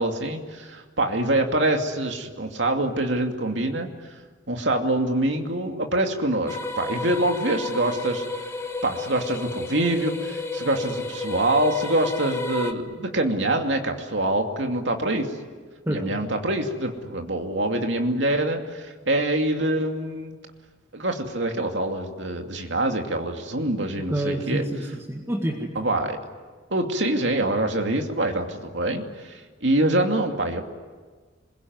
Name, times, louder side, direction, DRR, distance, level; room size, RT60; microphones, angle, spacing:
voice 1, 0.0-3.9 4.5-8.2 8.8-15.3 15.9-20.4 20.9-24.7 25.7-26.2 26.7-30.6, right 1 dB, 65° right, 3 dB, 2.6 m, -25 dB
sound 1, 6.5-12.7, left 2 dB, 15° left, 1.5 m, -32 dB
voice 2, 15.9-16.4 24.1-25.7, right 1 dB, 15° right, 1 dB, 1.9 m, -28 dB
27.0 x 22.0 x 9.5 m, 1.4 s
head